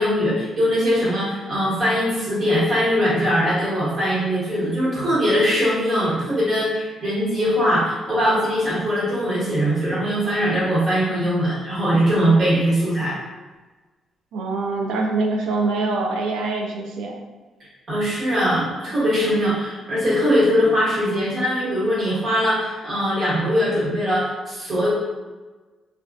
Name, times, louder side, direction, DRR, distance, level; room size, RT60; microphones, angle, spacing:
voice 1, 0.0-13.2 17.9-24.9, equal, 50° right, -9 dB, 1.3 m, -21 dB
voice 2, 14.3-17.2, right 3 dB, 85° right, 1 dB, 0.4 m, -24 dB
2.4 x 2.3 x 2.2 m, 1.3 s
cardioid pair, 90°, 0 cm